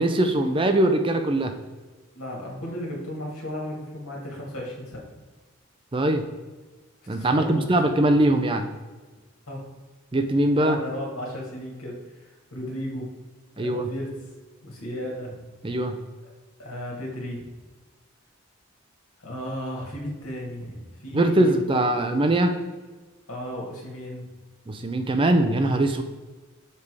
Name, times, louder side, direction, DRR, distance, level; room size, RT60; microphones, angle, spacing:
voice 1, 0.0-1.6 5.9-6.2 7.1-8.7 10.1-10.8 13.6-13.9 15.6-15.9 21.1-22.5 24.7-26.0, right 1 dB, 25° right, 6 dB, 0.4 m, -21 dB
voice 2, 2.1-5.1 7.1-7.6 9.5-9.7 10.5-13.1 13.6-14.1 14.6-15.3 16.6-17.5 19.2-22.0 23.3-24.3, equal, 80° left, -2 dB, 2.0 m, -35 dB
6.7 x 3.6 x 4.7 m, 1.3 s
head